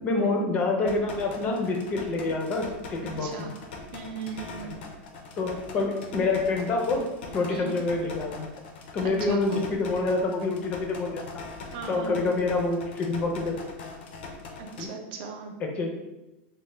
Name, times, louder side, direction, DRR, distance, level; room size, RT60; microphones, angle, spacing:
voice 1, 0.0-3.5 4.6-4.7 5.4-7.0 7.3-8.5 8.9-11.3 11.9-13.6 14.8-14.9 15.6-15.9, left 3 dB, 25° left, 2 dB, 0.4 m, -27 dB
sound 1, 0.9-14.9, left 3 dB, 80° left, 0.5 m, -42 dB
voice 2, 3.2-3.6 3.9-4.8 7.5-7.8 9.2-9.6 11.7-12.3 14.6-15.5, right 5 dB, 50° right, 3 dB, 0.5 m, -37 dB
3.2 x 2.0 x 3.1 m, 0.99 s
supercardioid pair, 170°, 6 cm